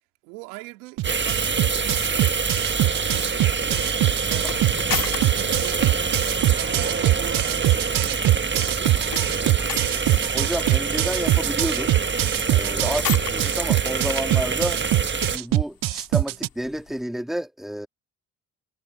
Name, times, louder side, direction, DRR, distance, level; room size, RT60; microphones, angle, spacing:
voice 1, 0.2-9.7, right 25 dB, 85° right, 2.6 m, -43 dB
sound 1, 1.0-15.4, right 5 dB, 25° right, 1.4 m, -26 dB
sound 2, 1.0-16.5, right 16 dB, 50° right, 0.6 m, -22 dB
sound 3, 1.5-17.0, left 9 dB, 55° left, 2.3 m, -39 dB
voice 2, 10.3-11.9 12.4-13.0 13.3-14.8 15.3-17.9, right 1 dB, ahead, 2.0 m, -30 dB
hypercardioid pair, 50°, 42 cm